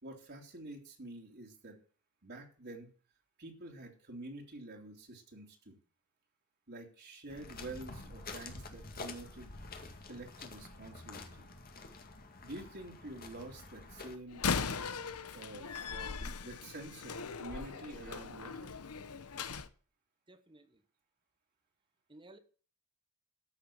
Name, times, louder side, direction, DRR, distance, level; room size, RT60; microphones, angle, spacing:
voice 1, 0.0-1.8 2.2-2.9 3.4-5.7 6.7-9.5 10.1-11.5 12.4-14.5 15.3-15.6 15.9-18.7, right 2 dB, 50° right, 2.9 m, -48 dB
sound 1, 7.3-14.2, left 3 dB, 45° left, 2.0 m, -48 dB
Slam, 14.3-19.7, left 5 dB, 80° left, 1.0 m, -39 dB
voice 2, 20.3-20.8 22.1-22.4, right 2 dB, 20° right, 1.2 m, -56 dB
13.5 x 6.6 x 7.2 m
head